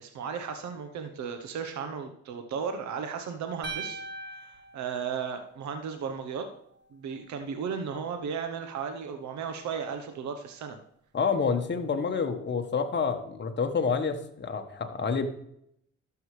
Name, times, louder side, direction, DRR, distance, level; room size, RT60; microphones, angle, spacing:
voice 1, 0.0-4.0 4.4-6.5 6.9-10.8, right 6 dB, 70° right, 7 dB, 0.9 m, -35 dB
sound 1, 3.6-5.9, right 3 dB, 35° right, 1.6 m, -40 dB
voice 2, 11.1-15.3, left 5 dB, 35° left, 5 dB, 1.2 m, -28 dB
11.5 x 6.9 x 3.2 m, 0.72 s
cardioid pair, 90°, 30 cm